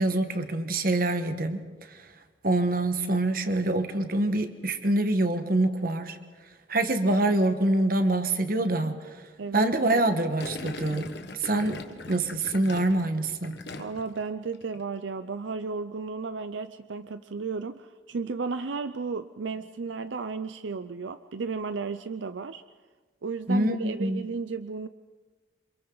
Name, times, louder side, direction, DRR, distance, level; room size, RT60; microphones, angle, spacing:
voice 1, 0.0-2.1 2.4-6.2 6.7-9.3 9.5-11.1 11.4-13.6 23.5-24.3, right 2 dB, 50° right, 8 dB, 1.4 m, -25 dB
voice 2, 9.4-10.0 13.8-22.6 23.2-24.9, right 4 dB, 80° right, 11 dB, 0.5 m, -34 dB
Gurgling, 10.4-14.2 14.5-14.8, left 2 dB, 60° left, 1.4 m, -40 dB
28.5 x 26.0 x 4.0 m, 1.4 s
head